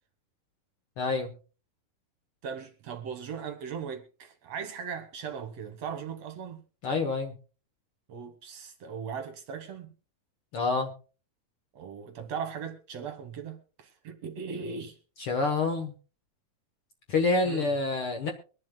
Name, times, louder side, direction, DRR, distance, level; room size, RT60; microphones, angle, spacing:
voice 1, 1.0-1.3 6.8-7.3 10.5-10.9 15.2-15.9 17.1-18.3, left 3 dB, 55° left, 1.6 m, -27 dB
voice 2, 2.4-6.6 8.1-9.9 11.7-15.0 17.4-17.7, right 6 dB, 60° right, 2.0 m, -38 dB
23.5 x 11.0 x 2.3 m
omnidirectional pair, 3.8 m